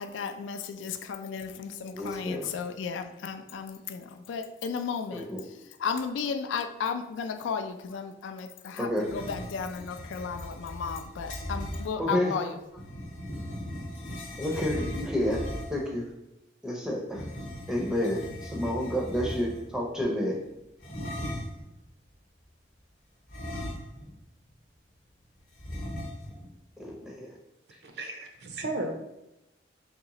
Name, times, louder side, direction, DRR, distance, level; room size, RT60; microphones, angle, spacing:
voice 1, 0.0-12.6, left 6 dB, 90° left, 8 dB, 0.3 m, -34 dB
voice 2, 1.9-2.5 5.1-5.4 8.8-9.1 12.0-12.3 14.4-16.1 16.6-17.3 17.7-20.4 26.8-27.3, left 1 dB, 5° right, -2 dB, 0.5 m, -30 dB
sound 1, 9.0-11.9 12.7-15.9 17.1-19.7 20.8-21.7 23.3-24.2 24.5-24.6 25.6-26.5, equal, 45° left, 0.7 m, -38 dB
voice 3, 28.0-28.9, right 2 dB, 65° right, 4 dB, 0.5 m, -34 dB
3.6 x 3.1 x 2.9 m, 0.90 s
head